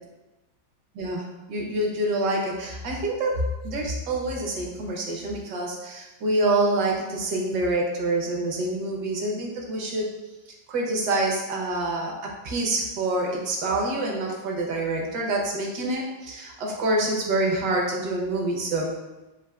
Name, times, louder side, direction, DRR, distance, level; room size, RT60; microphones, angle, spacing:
voice 1, 0.9-10.1 10.7-18.9, right 2 dB, 70° right, -1 dB, 1.5 m, -26 dB
7.8 x 2.7 x 2.3 m, 1.1 s
omnidirectional pair, 2.0 m